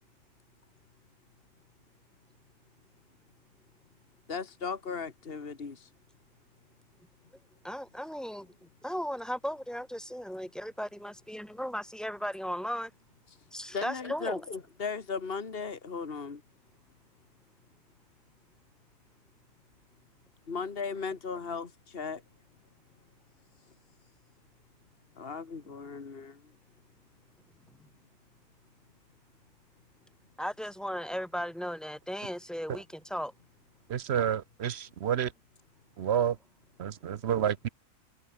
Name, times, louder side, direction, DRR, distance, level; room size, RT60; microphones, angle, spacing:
voice 1, 4.3-5.9 13.7-16.4 20.5-22.2 25.2-26.4, left 5 dB, 45° left, 2.1 m, -37 dB
voice 2, 7.6-12.9 13.5-14.4 30.4-33.3, equal, ahead, 6.6 m, -36 dB
voice 3, 33.9-35.3 36.0-36.4 36.8-37.7, right 9 dB, 55° right, 1.0 m, -29 dB
omnidirectional pair, 1.4 m